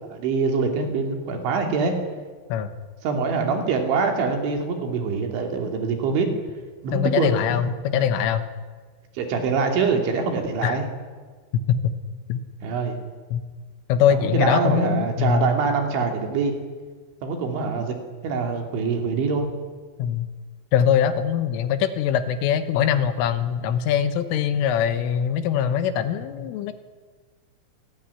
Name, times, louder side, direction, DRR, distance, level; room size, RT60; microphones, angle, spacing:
voice 1, 0.0-2.0 3.0-6.3 6.8-7.3 9.1-10.9 12.6-13.0 14.1-16.5 17.2-17.9 18.2-19.5, right 4 dB, 65° right, 4 dB, 5.0 m, -24 dB
voice 2, 6.9-8.4 10.6-10.8 11.7-11.9 12.3-12.4 13.3-13.4 13.9-15.5 20.0-20.3 20.7-26.7, left 8 dB, 80° left, 10 dB, 3.6 m, -22 dB
27.0 x 18.5 x 9.7 m, 1.5 s
omnidirectional pair, 6.0 m